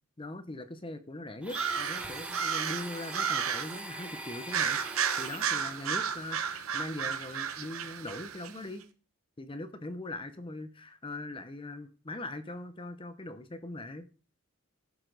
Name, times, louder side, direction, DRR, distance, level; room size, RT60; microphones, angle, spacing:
voice 1, 0.2-4.8 5.2-8.9 9.4-14.1, left 2 dB, 25° left, 0.7 m, -41 dB
Domestic sounds home sounds, 1.4-5.8, right 2 dB, 5° right, 1.2 m, -42 dB
sound 1, 1.5-3.8 4.5-8.5, right 7 dB, 90° right, 1.0 m, -33 dB
11.5 x 7.9 x 3.9 m
head